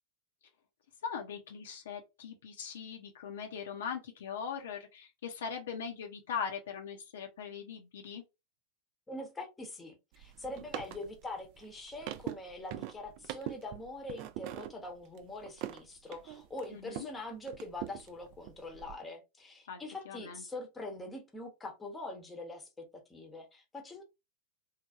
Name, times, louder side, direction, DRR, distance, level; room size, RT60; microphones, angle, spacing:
voice 1, 1.0-8.2 16.7-17.1 19.7-19.8 20.1-20.4, left 7 dB, 60° left, 0.5 m, -40 dB
voice 2, 9.1-24.0, left 2 dB, 10° left, 0.8 m, -44 dB
sound 1, 10.1-17.2 17.5-19.0, right 13 dB, 45° right, 0.3 m, -43 dB
3.1 x 2.1 x 2.4 m
figure-of-eight pair, 90°, 0 cm